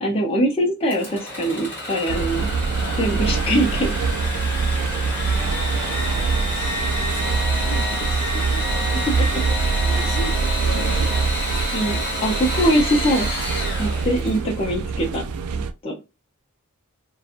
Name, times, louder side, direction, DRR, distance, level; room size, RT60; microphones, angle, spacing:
voice 1, 0.0-2.5 3.0-4.0 9.2-9.4 11.7-13.3 13.8-15.2 15.8-16.0, right 1 dB, 25° left, 0 dB, 0.5 m, -22 dB
Engine / Sawing, 0.9-14.6, left 1 dB, 10° left, 1.1 m, -29 dB
sound 1, 2.1-15.7, right 5 dB, 80° right, 0.4 m, -24 dB
voice 2, 2.6-3.2 5.2-9.5 9.9-11.2 11.9-12.2 14.2-14.3, left 2 dB, 85° left, 2 dB, 0.8 m, -38 dB
2.8 x 2.2 x 2.4 m, 0.26 s
head